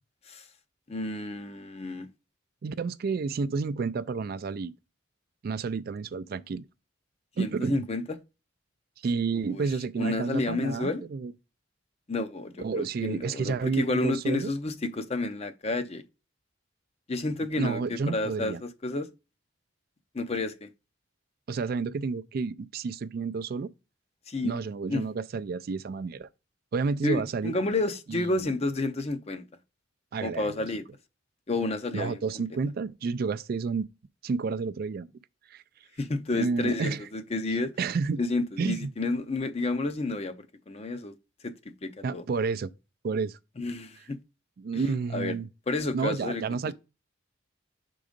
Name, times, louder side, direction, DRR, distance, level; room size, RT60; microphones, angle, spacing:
voice 1, 0.9-2.1 7.4-8.0 9.5-9.6 10.0-11.0 12.1-16.0 17.1-19.1 20.1-20.7 24.3-24.6 24.9-25.0 27.0-29.4 30.2-30.8 31.5-32.2 36.0-37.7 38.2-41.1 41.4-42.2 43.6-44.2 44.7-45.3 45.7-46.4, left 2 dB, 30° left, 0.6 m, -30 dB
voice 2, 2.6-4.7 5.4-6.6 7.4-7.8 9.0-11.3 12.6-14.5 17.6-18.6 21.5-23.7 24.4-26.3 26.7-27.5 28.1-28.3 30.1-30.7 31.9-33.8 34.2-35.1 35.5-35.6 36.3-37.0 37.8-38.2 38.6-38.9 42.0-42.7 43.0-43.4 44.6-45.5 45.9-46.7, right 4 dB, 50° right, 0.3 m, -30 dB
6.0 x 3.8 x 5.1 m
head